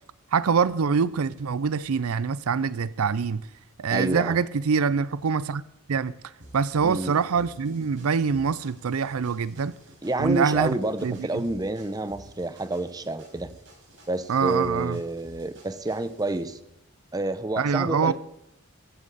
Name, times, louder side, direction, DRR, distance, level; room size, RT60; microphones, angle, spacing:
voice 1, 0.3-3.4 3.8-5.6 5.9-6.1 6.5-9.7 10.2-10.8 11.0-11.4 14.3-15.0 17.6-18.1, right 5 dB, 80° right, 0.5 m, -24 dB
voice 2, 3.9-4.4 6.8-7.1 10.0-13.5 14.1-16.6 17.1-18.1, right 2 dB, 15° right, 0.8 m, -29 dB
sound 1, 6.4-16.5, right 1 dB, 55° right, 5.1 m, -51 dB
15.0 x 13.5 x 4.1 m
head